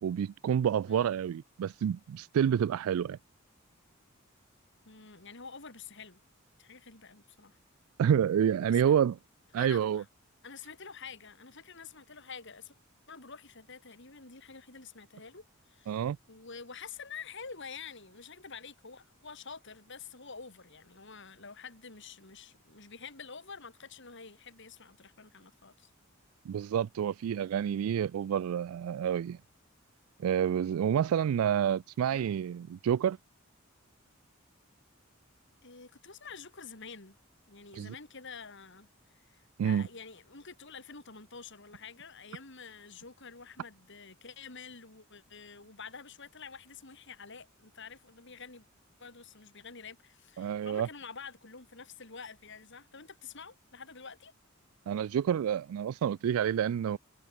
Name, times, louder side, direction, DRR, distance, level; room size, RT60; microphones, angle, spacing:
voice 1, 0.0-3.2 8.0-9.2 9.5-10.0 15.9-16.2 26.5-29.4 30.2-33.2 37.7-37.9 39.6-39.8 50.4-50.9 54.9-57.0, right 8 dB, 85° right, 0.3 m, -28 dB
voice 2, 4.9-6.2 6.6-7.6 8.7-8.9 9.6-10.1 10.4-12.8 13.1-25.9 32.1-32.3 35.6-37.2 37.5-48.7 49.0-54.3, left 5 dB, 60° left, 3.7 m, -48 dB
head